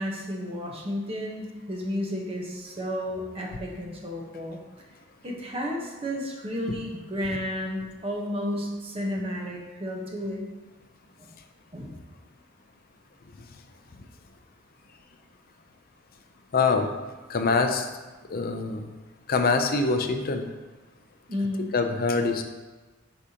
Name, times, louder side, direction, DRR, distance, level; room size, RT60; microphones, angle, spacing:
voice 1, 0.0-4.6 5.2-10.4 11.2-11.3 11.7-11.9 21.3-21.7, equal, 30° right, -1 dB, 1.1 m, -32 dB
voice 2, 16.5-16.9 17.3-17.9 18.3-18.8 19.3-20.5 21.6-22.5, left 4 dB, 45° left, 6 dB, 0.5 m, -24 dB
8.6 x 4.9 x 2.9 m, 1.2 s
head